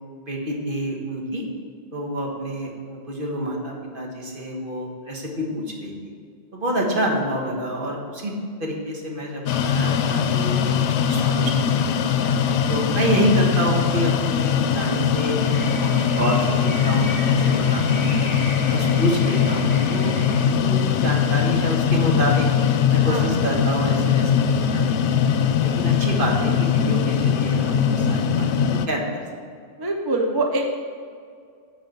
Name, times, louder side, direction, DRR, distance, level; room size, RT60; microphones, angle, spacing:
voice 1, 0.3-1.4 1.9-5.9 6.5-8.3 8.6-11.9 12.7-15.4 15.8-18.3 18.7-22.5 22.9-25.2 25.6-29.0, right 1 dB, 55° right, -1 dB, 1.6 m, -28 dB
sound 1, 9.5-28.9, left 7 dB, 85° left, 0.9 m, -21 dB
sound 2, 15.3-20.5, right 1 dB, 10° right, 1.4 m, -33 dB
voice 2, 29.8-30.7, right 2 dB, 25° right, 2 dB, 0.6 m, -25 dB
9.5 x 4.8 x 6.9 m, 2.2 s
omnidirectional pair, 1.1 m